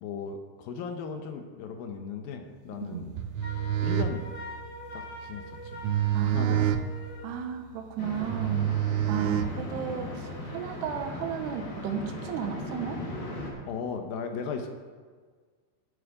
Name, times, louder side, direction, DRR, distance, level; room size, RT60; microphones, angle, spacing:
voice 1, 0.0-3.1 3.8-4.3 4.9-5.8 6.3-6.8 13.7-14.7, left 5 dB, 75° left, 5 dB, 2.2 m, -36 dB
sound 1, 3.1-10.0, right 11 dB, 90° right, 3.1 m, -29 dB
Wind instrument woodwind instrument, 3.4-7.3, left 1 dB, 35° left, 2.0 m, -43 dB
voice 2, 6.1-6.8 7.2-8.7 9.1-13.0, right 7 dB, 75° right, 5 dB, 3.0 m, -34 dB
sound 2, 8.0-13.5, left 1 dB, 60° left, 5.2 m, -38 dB
10.5 x 7.6 x 9.1 m, 1.6 s
omnidirectional pair, 5.3 m